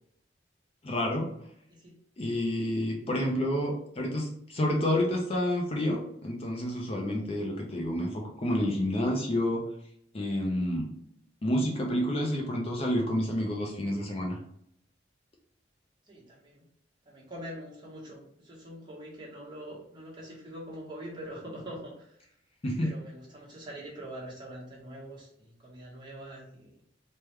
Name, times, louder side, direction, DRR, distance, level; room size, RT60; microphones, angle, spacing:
voice 1, 0.8-1.3 2.2-9.6 10.1-10.9 11.4-14.4 22.6-22.9, left 1 dB, 35° left, 0 dB, 0.5 m, -29 dB
voice 2, 16.1-16.6 17.0-22.2 22.8-26.7, right 1 dB, 25° right, -5 dB, 1.1 m, -44 dB
3.4 x 2.2 x 3.0 m, 0.70 s
head